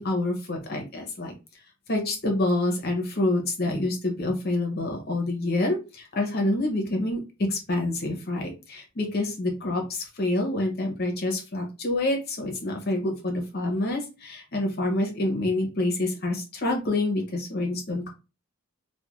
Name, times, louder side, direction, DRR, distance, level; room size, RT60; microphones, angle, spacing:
voice 1, 0.0-1.3 1.9-7.2 7.5-18.1, left 2 dB, 45° left, 2 dB, 0.9 m, -27 dB
3.2 x 2.4 x 2.4 m, 0.30 s
head